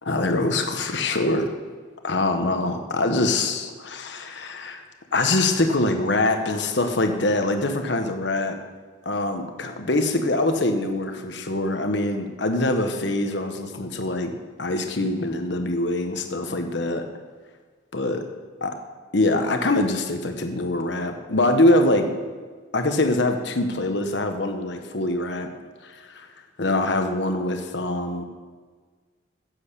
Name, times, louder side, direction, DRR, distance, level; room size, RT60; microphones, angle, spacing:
voice 1, 0.0-1.5 2.0-4.8 5.1-8.6 9.0-14.3 14.6-17.1 17.9-18.2 18.6-18.7 19.1-22.1 22.7-25.5 25.8-26.3 26.6-28.2, left 2 dB, 65° left, 5 dB, 1.1 m, -24 dB
10.0 x 7.9 x 6.8 m, 1.5 s
head